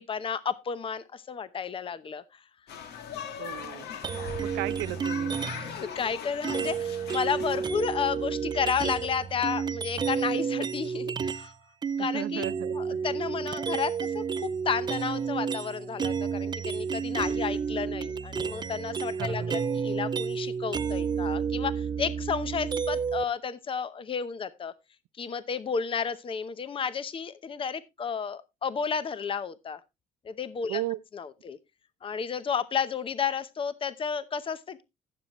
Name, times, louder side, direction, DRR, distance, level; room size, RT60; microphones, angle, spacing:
voice 1, 0.0-2.4 5.4-11.5 12.0-12.4 12.7-24.7 25.2-29.8 30.2-30.8 31.1-31.6 32.0-34.8, left 6 dB, 30° left, 0.8 m, -32 dB
sound 1, 2.7-7.7, left 8 dB, 75° left, 1.8 m, -40 dB
voice 2, 3.4-3.9 4.4-5.3 12.0-13.0 19.4-19.8 30.7-31.0, right 17 dB, 90° right, 0.5 m, -35 dB
sound 2, 4.0-5.8 6.4-11.5 11.8-23.2, right 6 dB, 25° right, 0.4 m, -31 dB
14.0 x 7.3 x 3.0 m
cardioid pair, 110°, 17 cm